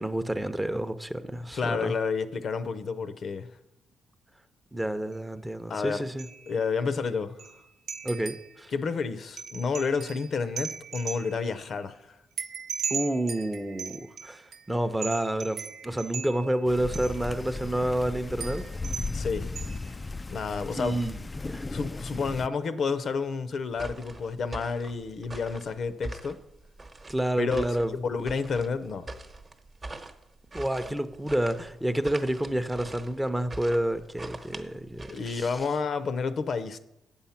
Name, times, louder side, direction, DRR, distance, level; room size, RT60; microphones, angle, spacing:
voice 1, 0.0-1.9 4.7-6.3 8.0-8.7 12.9-18.6 20.7-21.2 21.4-21.6 27.1-27.9 30.5-35.5, right 1 dB, 10° right, 0.7 m, -29 dB
voice 2, 1.5-3.5 5.7-6.0 6.5-7.4 8.7-12.2 19.1-19.6 20.3-21.0 21.7-26.4 27.4-29.1 35.1-36.8, left 5 dB, 55° left, 0.6 m, -30 dB
sound 1, 5.1-5.2 6.2-6.6 6.9-7.0 7.4-7.6 7.9-8.6 9.4-11.5 12.4-14.7 15.0-16.6 16.9-17.3 17.7-17.8 18.4-19.2 19.6-19.9, right 6 dB, 65° right, 0.6 m, -38 dB
sound 2, 16.6-22.5, left 3 dB, 20° left, 0.3 m, -36 dB
sound 3, 23.8-35.7, right 2 dB, 25° right, 1.0 m, -43 dB
8.6 x 7.2 x 5.8 m
cardioid pair, 90°, 0 cm